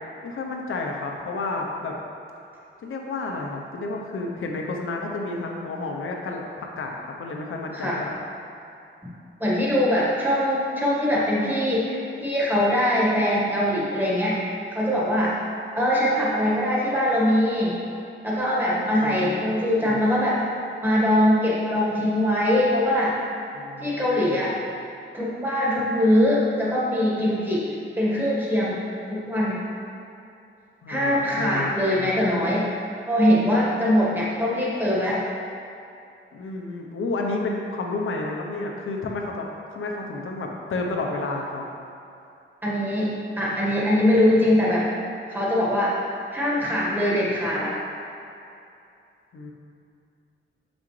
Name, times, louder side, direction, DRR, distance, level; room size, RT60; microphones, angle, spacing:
voice 1, 0.2-1.9 2.8-8.1 19.0-20.1 23.5-24.6 30.8-32.4 36.3-41.6 49.3-49.5, left 3 dB, 75° left, 1 dB, 0.9 m, -31 dB
voice 2, 9.4-14.4 14.7-15.3 15.7-17.8 18.2-20.4 20.8-23.2 23.8-24.6 25.1-27.6 28.0-28.8 29.1-29.6 30.9-32.7 33.1-35.2 42.6-44.9 45.3-45.9 46.3-47.7, left 1 dB, 10° right, -6 dB, 1.6 m, -22 dB
7.1 x 6.2 x 3.3 m, 2.6 s
wide cardioid pair, 115°, 21 cm